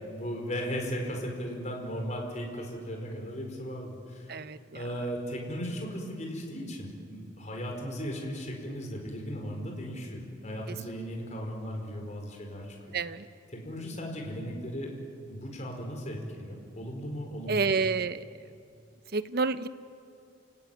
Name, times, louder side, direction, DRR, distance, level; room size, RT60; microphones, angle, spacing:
voice 1, 0.0-4.3 4.7-12.9 13.5-15.0 15.2-17.8, equal, 40° left, 1 dB, 4.9 m, -36 dB
voice 2, 12.9-13.3 17.5-18.2 19.1-19.7, right 4 dB, 55° right, 13 dB, 0.9 m, -28 dB
29.0 x 18.0 x 9.3 m, 2.6 s
head